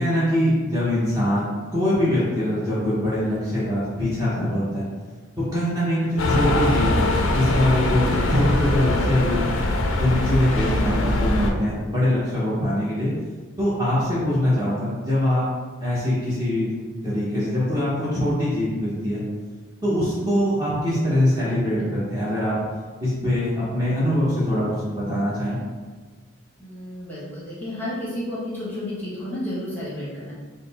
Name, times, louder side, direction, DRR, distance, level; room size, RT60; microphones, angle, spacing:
voice 1, 0.0-1.5 1.7-4.8 5.4-9.4 10.0-13.1 13.6-15.5 15.8-16.7 17.0-19.2 19.8-22.6 23.0-25.6, left 1 dB, 15° right, -10 dB, 0.8 m, -23 dB
sound 1, 6.2-11.5, left 2 dB, 75° left, 0.4 m, -22 dB
voice 2, 26.6-30.3, left 1 dB, 10° left, -9 dB, 1.0 m, -31 dB
3.8 x 2.1 x 4.0 m, 1.4 s
head